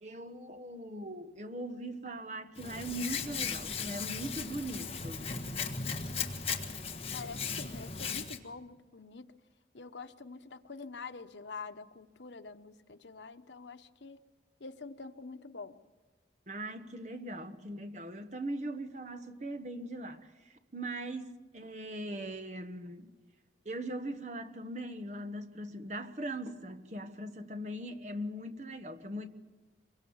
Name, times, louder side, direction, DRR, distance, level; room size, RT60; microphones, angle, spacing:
voice 1, 0.0-5.4 16.5-20.3 20.7-23.1 23.6-29.3, right 1 dB, 40° right, 1.3 m, -40 dB
Hands, 2.6-8.4, left 5 dB, 35° left, 1.6 m, -37 dB
voice 2, 7.1-9.3 9.7-14.2 14.6-15.8, left 4 dB, 90° left, 1.1 m, -46 dB
25.0 x 23.0 x 7.2 m
head